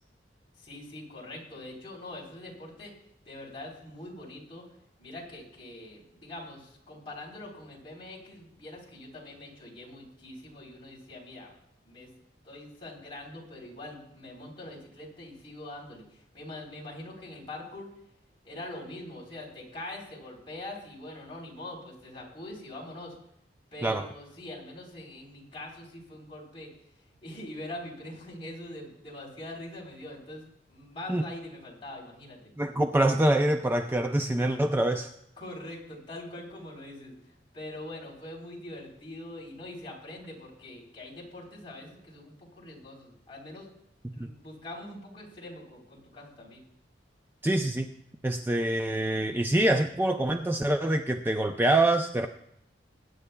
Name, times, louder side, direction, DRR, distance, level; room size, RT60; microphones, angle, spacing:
voice 1, 0.6-2.9 3.2-4.6 5.0-11.5 11.8-12.1 12.4-17.9 18.4-23.2 23.7-26.7 27.2-32.5 35.4-37.1 37.5-43.7 44.1-46.6, left 1 dB, 30° left, -4 dB, 3.6 m, -43 dB
voice 2, 32.6-35.1 44.0-44.1 47.4-47.9 48.2-52.3, right 1 dB, 10° right, 6 dB, 0.4 m, -25 dB
22.0 x 9.6 x 2.2 m, 0.76 s
head